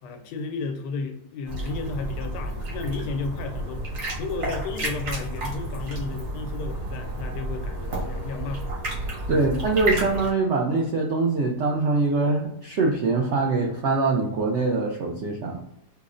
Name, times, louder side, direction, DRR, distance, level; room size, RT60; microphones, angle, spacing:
voice 1, 0.0-3.9 4.2-8.9 9.3-9.4, left 4 dB, 90° left, 6 dB, 1.2 m, -33 dB
sound 1, 1.4-10.3, right 1 dB, 60° right, 1.7 m, -31 dB
voice 2, 9.3-15.6, right 3 dB, 80° right, 1 dB, 0.6 m, -23 dB
5.0 x 2.0 x 2.4 m, 0.80 s
omnidirectional pair, 1.8 m